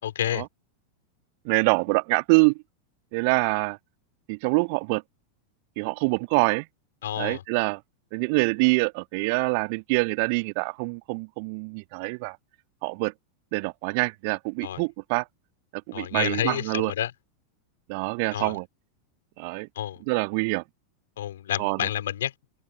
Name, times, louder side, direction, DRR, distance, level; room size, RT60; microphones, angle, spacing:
voice 1, 0.0-0.4 7.0-7.4 14.6-14.8 15.9-17.1 18.3-18.6 19.8-20.0 21.2-22.3, left 11 dB, 60° left, 4.1 m, -29 dB
voice 2, 1.4-2.5 3.1-3.8 4.3-5.0 5.8-6.7 7.2-7.8 8.1-12.4 12.8-13.1 13.5-15.2 15.9-16.9 17.9-18.6 19.4-19.7 20.1-20.6 21.6-21.9, right 32 dB, 45° right, 1.7 m, -25 dB
figure-of-eight pair, 90°, 0 cm